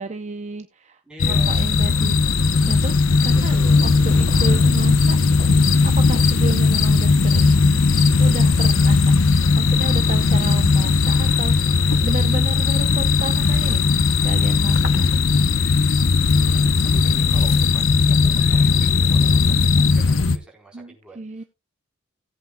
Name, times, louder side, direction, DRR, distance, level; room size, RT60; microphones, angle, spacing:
voice 1, 0.0-1.0 1.3-2.3 2.7-3.6 3.8-5.2 5.8-7.9 8.2-9.1 9.6-13.9 14.1-15.1 20.7-21.4, right 3 dB, 35° right, 8 dB, 0.7 m, -32 dB
voice 2, 1.1-1.8 3.3-4.1 10.2-10.6 16.2-21.5, right 3 dB, 5° right, -1 dB, 4.1 m, -44 dB
sound 1, 1.2-20.4, left 4 dB, 75° left, 0.8 m, -17 dB
sound 2, 1.7-8.8, left 1 dB, 30° left, 2.4 m, -38 dB
18.0 x 8.2 x 2.3 m, 0.24 s
head